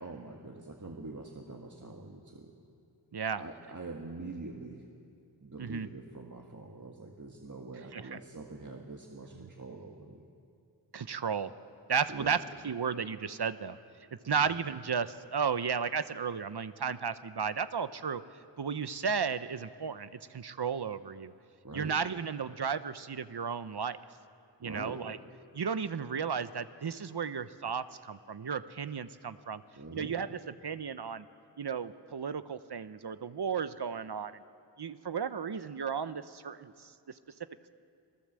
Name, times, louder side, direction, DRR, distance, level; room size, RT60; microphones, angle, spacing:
voice 1, 0.0-2.5 3.4-4.8 5.4-10.2 12.1-12.4 14.2-14.5 21.6-21.9 24.6-25.0 29.7-30.2, right 3 dB, 45° right, 1 dB, 2.0 m, -44 dB
voice 2, 10.9-11.5 11.9-13.8 14.2-18.2 18.6-21.3 21.7-24.0 24.6-25.2 25.5-29.6 29.9-31.2 31.6-34.3 34.8-36.9, right 6 dB, 65° right, 13 dB, 0.8 m, -34 dB
26.5 x 16.5 x 7.6 m, 2.5 s
wide cardioid pair, 40°, 43 cm